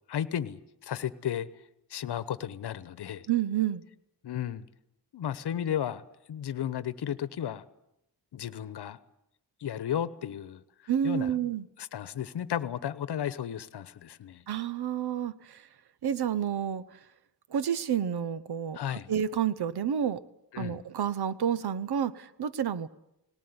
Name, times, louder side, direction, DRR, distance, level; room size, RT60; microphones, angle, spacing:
voice 1, 0.1-1.5 1.9-3.3 4.2-4.6 5.1-6.0 6.3-7.6 8.3-9.0 9.6-10.6 11.0-11.3 11.8-14.4 18.7-19.1 20.5-20.8, left 10 dB, 70° left, 15 dB, 1.1 m, -34 dB
voice 2, 3.3-3.8 10.9-11.6 14.5-15.7 16.0-17.0 17.5-18.8 19.1-20.2 20.6-22.9, right 9 dB, 65° right, 16 dB, 1.0 m, -29 dB
19.0 x 18.5 x 9.7 m, 0.84 s
wide cardioid pair, 105°, 41 cm